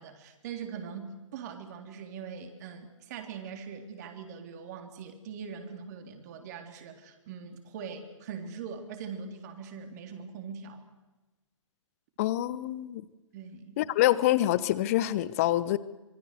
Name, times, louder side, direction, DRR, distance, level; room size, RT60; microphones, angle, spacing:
voice 1, 0.0-10.8 13.3-13.8, right 6 dB, 35° right, 5 dB, 3.6 m, -42 dB
voice 2, 12.2-13.0 13.8-15.8, left 14 dB, 30° left, 18 dB, 1.0 m, -26 dB
26.0 x 24.0 x 6.8 m, 1.1 s
figure-of-eight pair, 130°, 16 cm